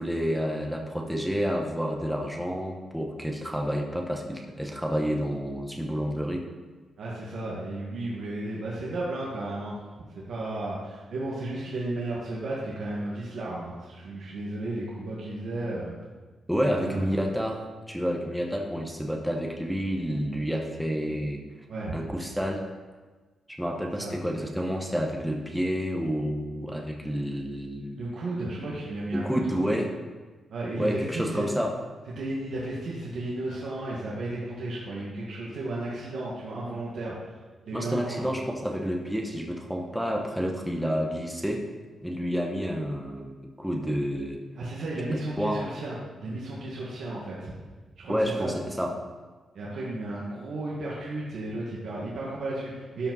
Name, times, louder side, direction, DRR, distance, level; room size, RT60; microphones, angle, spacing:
voice 1, 0.0-6.4 16.5-21.4 21.9-22.7 23.5-28.0 29.1-29.9 30.8-31.8 37.7-41.7 42.0-44.4 45.1-45.7 48.1-49.0, equal, ahead, 1 dB, 0.9 m, -29 dB
voice 2, 7.0-9.7 10.3-15.9 16.8-17.2 21.7-22.0 24.0-24.1 28.0-29.2 29.6-29.8 30.5-31.4 32.2-37.2 37.6-38.3 44.6-47.5 48.0-48.5 49.5-53.1, right 2 dB, 65° right, -5 dB, 1.7 m, -33 dB
12.5 x 5.1 x 4.1 m, 1.3 s
wide cardioid pair, 155°, 0 cm